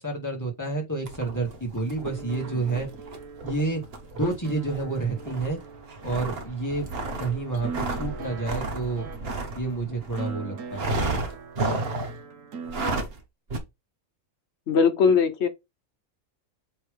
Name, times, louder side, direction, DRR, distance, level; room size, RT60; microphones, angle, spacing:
voice 1, 0.0-2.9 3.4-3.8 4.1-5.6 6.0-6.9 7.2-9.1 9.5-11.0, right 3 dB, 15° left, 2.1 m, -29 dB
sound 1, 1.0-10.3 10.7-12.2 12.6-13.2 13.5-13.6, right 2 dB, 50° right, 1.4 m, -33 dB
sound 2, 2.0-12.8, right 5 dB, 70° right, 1.3 m, -41 dB
voice 2, 14.7-15.5, left 6 dB, 55° left, 1.2 m, -20 dB
7.7 x 3.7 x 3.4 m
omnidirectional pair, 1.4 m